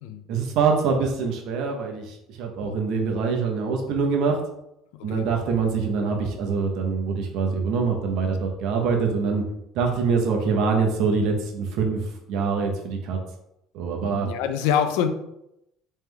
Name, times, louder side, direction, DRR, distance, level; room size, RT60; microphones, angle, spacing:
voice 1, 0.3-4.4 5.0-9.4 9.7-13.2 13.7-14.3, right 5 dB, 70° right, 2 dB, 0.9 m, -24 dB
voice 2, 14.0-15.1, left 8 dB, 85° left, 8 dB, 0.4 m, -26 dB
3.5 x 3.2 x 3.3 m, 0.82 s
supercardioid pair, 95°, 0 cm